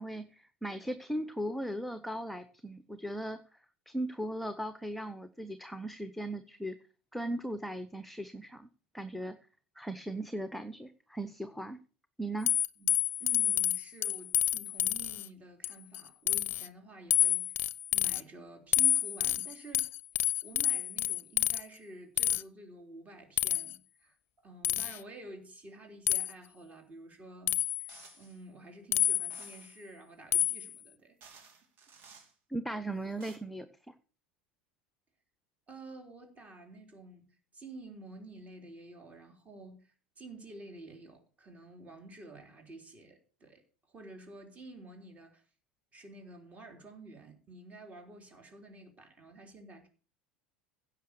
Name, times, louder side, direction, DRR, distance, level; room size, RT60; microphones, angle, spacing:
voice 1, 0.0-3.4 3.9-6.8 7.1-8.7 8.9-9.4 9.8-11.8 12.2-12.5 32.5-33.7, right 1 dB, ahead, 0.9 m, -38 dB
sound 1, 12.5-15.3 15.6-16.0 16.3-16.7 17.1-18.2 18.7-21.6 22.2-22.4 23.4-23.8 24.6-25.0 26.1-26.3 27.5-27.9 28.9-29.5 30.3-30.7, left 13 dB, 40° left, 0.6 m, -29 dB
voice 2, 13.2-17.6 17.9-19.9 20.2-24.2 24.4-31.5 35.7-37.3 37.5-45.4 45.9-49.9, right 2 dB, 25° right, 3.7 m, -50 dB
sound 2, 27.9-28.4 29.3-29.8 30.7-30.8 31.2-32.3 33.0-33.4, right 5 dB, 45° right, 3.2 m, -55 dB
16.0 x 5.9 x 6.7 m
figure-of-eight pair, 75°, 6 cm